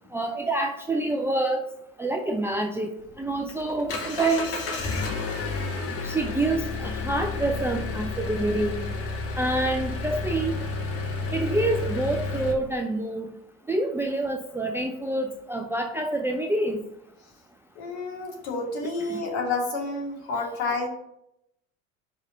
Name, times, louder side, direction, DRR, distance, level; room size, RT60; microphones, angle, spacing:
voice 1, 0.1-1.6 2.0-2.9 3.2-4.5 6.0-8.8 9.4-10.6 11.3-13.3 13.7-16.8 19.1-19.2, right 2 dB, 5° right, 3 dB, 0.4 m, -27 dB
Engine, 3.0-12.5, left 3 dB, 35° left, 1.5 m, -31 dB
voice 2, 17.8-20.9, left 3 dB, 55° left, 0 dB, 2.2 m, -29 dB
5.4 x 4.8 x 6.4 m, 0.79 s
figure-of-eight pair, 70°, 39 cm